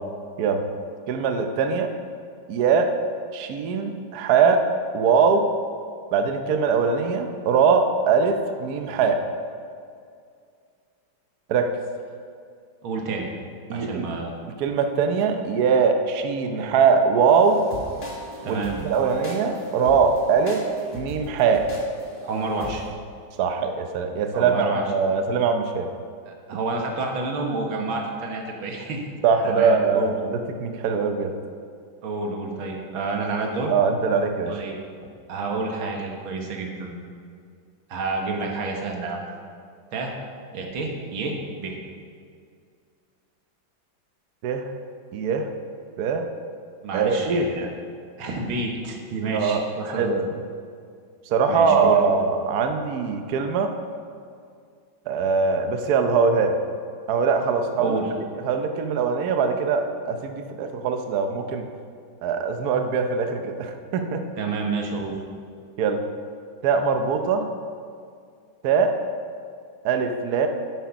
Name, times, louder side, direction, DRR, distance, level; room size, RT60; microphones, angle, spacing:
voice 1, 1.1-1.9 2.5-2.9 3.3-4.6 4.9-5.5 6.1-9.2 11.5-11.7 13.7-14.1 14.6-17.6 18.5-20.6 20.9-21.7 23.4-25.9 29.2-31.3 33.7-34.6 44.4-44.7 45.1-45.5 46.0-46.3 46.9-47.5 49.3-50.3 51.3-53.7 55.1-56.6 57.1-58.0 58.5-61.7 62.2-64.3 65.8-66.0 66.6-67.5 68.6-69.0 69.8-70.5, right 5 dB, 60° right, 6 dB, 1.1 m, -22 dB
voice 2, 12.8-13.3 13.7-14.3 18.4-18.8 22.2-22.8 24.3-24.8 26.3-29.0 29.4-30.1 32.0-33.7 34.5-34.8 35.3-36.9 37.9-39.2 39.9-40.1 40.5-41.7 46.8-47.7 48.2-50.1 51.5-52.1 57.8-58.1 64.4-65.1, right 3 dB, 90° right, 1 dB, 2.2 m, -29 dB
sound 1, 17.3-22.9, right 1 dB, 30° left, 1.7 m, -36 dB
10.5 x 7.9 x 5.9 m, 2.2 s
omnidirectional pair, 2.2 m